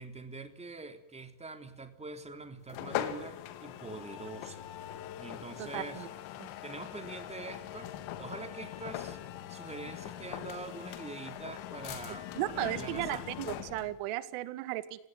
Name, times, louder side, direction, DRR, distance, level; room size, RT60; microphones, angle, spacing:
voice 1, 0.0-4.6 5.2-6.1 6.6-7.9 8.2-9.2 9.5-13.2, right 3 dB, 15° right, 7 dB, 3.6 m, -44 dB
sound 1, 2.7-14.0, left 12 dB, 70° left, 3.5 m, -41 dB
voice 2, 5.6-6.1 6.4-6.5 12.3-15.1, right 16 dB, 80° right, 13 dB, 2.3 m, -35 dB
29.5 x 18.0 x 9.5 m, 0.74 s
cardioid pair, 140°, 50 cm